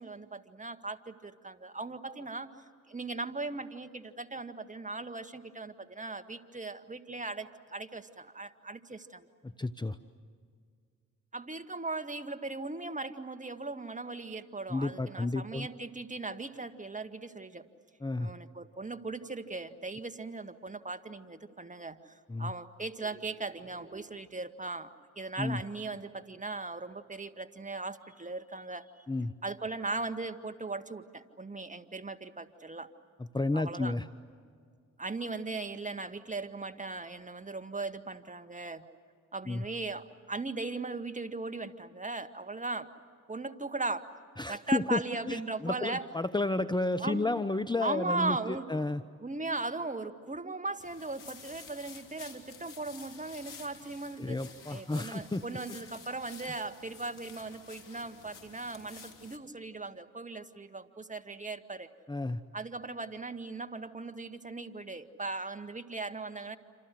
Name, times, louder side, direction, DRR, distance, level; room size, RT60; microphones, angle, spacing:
voice 1, 0.0-2.5 2.9-9.3 11.3-17.7 18.2-24.9 25.2-29.0 29.4-32.9 33.5-33.9 35.0-38.9 39.3-42.9 43.3-44.1 44.5-46.0 47.0-47.3 47.8-48.7 49.2-54.4 54.7-61.9 62.5-66.6, right 3 dB, 20° right, 9 dB, 1.9 m, -38 dB
voice 2, 9.4-10.0 14.7-15.7 18.0-18.3 22.3-22.5 25.4-25.6 29.1-29.3 33.2-34.1 39.5-39.6 44.4-45.0 45.3-48.4 48.7-49.0 54.2-55.4 56.4-56.5 62.1-62.4, left 2 dB, 10° left, 10 dB, 0.9 m, -31 dB
sound 1, 50.8-59.4, left 6 dB, 60° left, 3.2 m, -51 dB
27.5 x 27.5 x 7.8 m, 2.1 s
hypercardioid pair, 45°, 36 cm